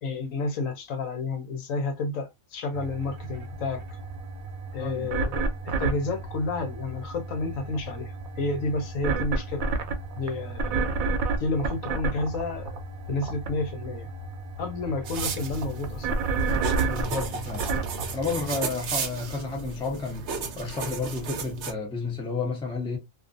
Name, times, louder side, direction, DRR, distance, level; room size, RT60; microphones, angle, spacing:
voice 1, 0.0-4.0 4.7-9.7 10.1-11.1 11.4-12.8 13.1-14.1 14.6-16.1, left 3 dB, 75° left, 1.1 m, -31 dB
sound 1, 2.7-18.6, right 3 dB, 85° right, 1.0 m, -31 dB
voice 2, 4.8-5.1 16.9-17.7 18.1-20.3 20.6-23.0, left 4 dB, 5° left, 0.5 m, -31 dB
sound 2, 15.0-21.7, right 5 dB, 65° right, 0.9 m, -34 dB
2.5 x 2.4 x 2.5 m
omnidirectional pair, 1.4 m